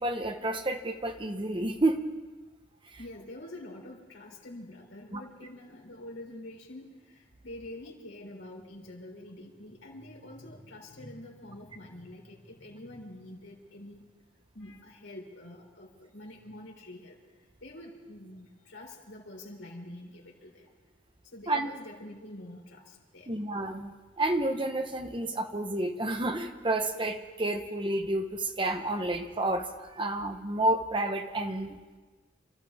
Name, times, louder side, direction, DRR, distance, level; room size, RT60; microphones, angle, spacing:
voice 1, 0.0-2.0 5.1-5.2 21.5-21.7 23.3-31.8, right 2 dB, 25° right, 6 dB, 1.0 m, -30 dB
voice 2, 3.0-14.0 14.5-17.2 17.6-20.6 21.3-23.3, left 1 dB, 75° left, -2 dB, 4.0 m, -46 dB
28.0 x 13.5 x 3.6 m, 1.3 s
head